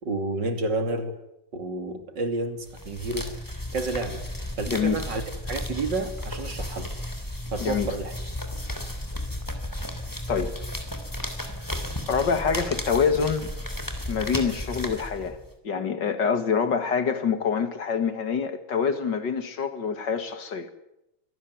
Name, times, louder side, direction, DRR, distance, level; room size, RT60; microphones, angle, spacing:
voice 1, 0.0-1.1 1.5-3.3 3.7-4.2 4.6-6.9 7.5-8.1, right 2 dB, 60° right, 7 dB, 3.5 m, -30 dB
sound 1, 2.7-15.5, left 1 dB, 10° left, 3.4 m, -34 dB
voice 2, 4.7-5.0 7.6-7.9 10.3-10.5 12.1-13.5 14.1-15.4 15.6-20.7, left 6 dB, 60° left, 10 dB, 2.5 m, -26 dB
25.5 x 18.0 x 9.5 m, 0.87 s
omnidirectional pair, 2.2 m